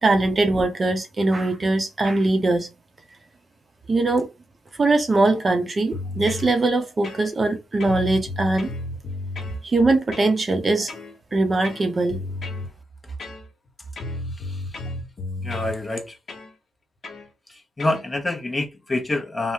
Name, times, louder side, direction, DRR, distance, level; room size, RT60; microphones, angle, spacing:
voice 1, 0.0-2.7 3.9-4.3 4.8-8.7 9.6-10.9 11.3-12.2, right 2 dB, 30° right, 0.7 m, -21 dB
sound 1, 5.9-6.5 7.0-7.5 7.8-9.6 10.1-10.4 10.9-11.1 11.6-12.7 13.2-13.7 14.0-15.8 16.3-16.5 17.0-17.3 17.8-18.0, left 2 dB, 50° left, 1.1 m, -33 dB
voice 2, 15.4-16.1 17.5-19.5, left 2 dB, 20° left, 0.8 m, -27 dB
3.2 x 2.1 x 2.7 m
cardioid pair, 90°, 0 cm